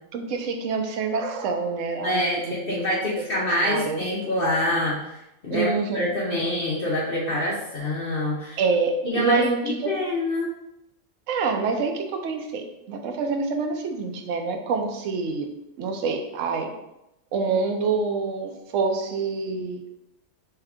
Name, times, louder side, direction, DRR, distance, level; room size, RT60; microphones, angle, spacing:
voice 1, 0.1-2.8 3.1-3.2 3.6-4.0 5.5-6.4 8.6-10.0 11.3-15.5 15.8-16.7 17.3-19.8, right 4 dB, 70° right, 4 dB, 1.0 m, -26 dB
voice 2, 2.0-8.6 9.0-10.5, left 1 dB, 50° left, -6 dB, 0.9 m, -26 dB
3.6 x 3.4 x 3.5 m, 0.87 s
omnidirectional pair, 1.4 m